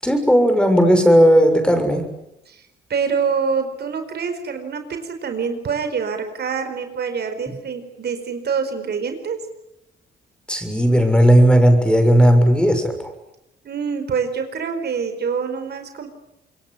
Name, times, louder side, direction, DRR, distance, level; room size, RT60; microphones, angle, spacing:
voice 1, 0.0-2.1 10.5-13.1, equal, 5° left, 7 dB, 6.7 m, -15 dB
voice 2, 2.5-9.4 13.6-16.1, right 6 dB, 55° right, 7 dB, 4.7 m, -26 dB
26.5 x 22.5 x 9.9 m, 0.83 s
cardioid pair, 90°, 20 cm